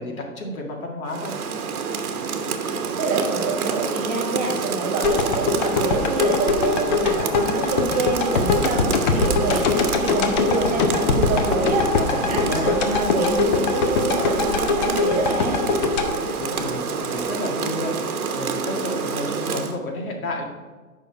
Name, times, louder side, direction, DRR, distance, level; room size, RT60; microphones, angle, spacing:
voice 1, 0.0-1.3 11.6-12.8 16.4-20.5, left 1 dB, 75° left, 1 dB, 2.1 m, -31 dB
Rain, 1.1-19.8, right 5 dB, 85° right, 1.1 m, -27 dB
voice 2, 3.0-15.6, right 2 dB, 20° right, -1 dB, 1.6 m, -26 dB
sound 1, 5.0-17.2 17.6-17.7, left 4 dB, 30° left, 0.7 m, -22 dB
7.8 x 5.7 x 4.6 m, 1.3 s
hypercardioid pair, 150°, 43 cm